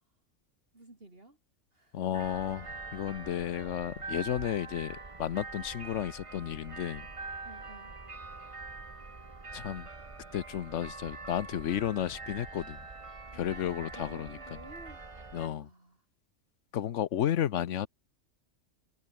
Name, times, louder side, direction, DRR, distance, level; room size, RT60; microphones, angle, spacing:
voice 1, 0.7-1.4 1.7-2.0 7.4-8.0 13.3-15.1 15.4-16.0, right 2 dB, 50° right, 4.5 m, -53 dB
voice 2, 1.9-7.1 9.5-9.9 10.3-12.9 13.3-14.4 15.3-15.7 16.7-17.9, left 10 dB, 75° left, 1.2 m, -33 dB
sound 1, 2.1-15.5, right 3 dB, 25° right, 1.3 m, -44 dB
omnidirectional pair, 1.3 m